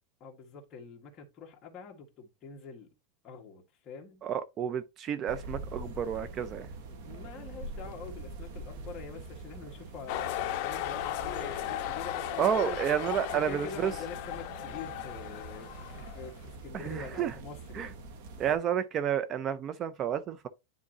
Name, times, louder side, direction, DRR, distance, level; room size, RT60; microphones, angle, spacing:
voice 1, 0.2-2.9 3.2-4.2 6.9-12.8 13.3-18.0, left 5 dB, 30° left, 1.7 m, -45 dB
voice 2, 4.2-6.7 12.4-13.9 16.7-17.3 17.7-17.9 18.4-20.5, right 9 dB, 25° right, 0.5 m, -30 dB
sound 1, 5.3-18.6, right 2 dB, 60° right, 1.4 m, -44 dB
sound 2, 10.1-16.4, left 13 dB, 45° left, 1.0 m, -36 dB
9.8 x 3.8 x 2.8 m
supercardioid pair, 155°, 0 cm